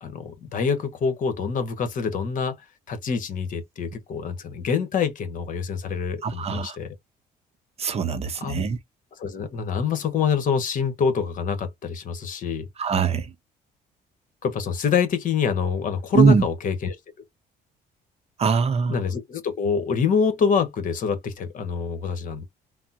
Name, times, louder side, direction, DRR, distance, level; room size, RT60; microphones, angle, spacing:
voice 1, 0.0-2.5 2.9-6.9 8.4-8.6 9.2-12.7 14.4-17.0 18.9-22.5, left 6 dB, 50° left, 1.1 m, -26 dB
voice 2, 6.2-6.8 7.8-8.8 12.8-13.3 16.1-16.4 18.4-19.0, right 5 dB, 35° right, 0.7 m, -21 dB
3.4 x 2.0 x 2.8 m
cardioid pair, 110°, 17 cm